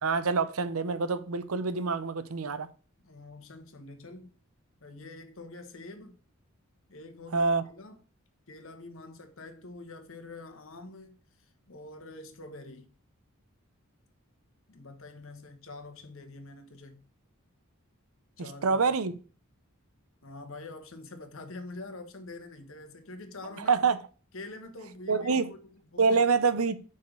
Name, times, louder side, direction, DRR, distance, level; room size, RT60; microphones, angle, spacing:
voice 1, 0.0-2.7 7.3-7.6 18.4-19.1 23.6-24.0 25.1-25.5 26.0-26.8, right 4 dB, 80° right, 0.7 m, -26 dB
voice 2, 3.0-4.3 4.8-6.1 6.9-8.0 8.5-12.9 14.7-17.0 18.4-18.8 20.2-23.9 24.3-26.2, left 2 dB, 65° left, 1.3 m, -46 dB
5.6 x 5.0 x 6.3 m
head